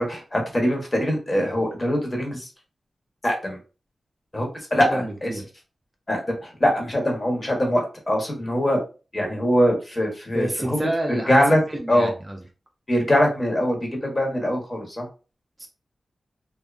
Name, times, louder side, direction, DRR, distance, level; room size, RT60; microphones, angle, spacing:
voice 1, 0.0-2.5 3.2-3.6 4.3-5.3 6.1-8.8 9.1-10.8 11.1-11.6 11.9-12.1 12.9-15.1, equal, 30° left, 1 dB, 0.8 m, -22 dB
voice 2, 4.8-5.4 10.3-12.4 15.6-15.7, right 1 dB, 20° right, 1 dB, 0.5 m, -29 dB
2.6 x 2.2 x 2.3 m, 0.33 s
wide cardioid pair, 90°, 0 cm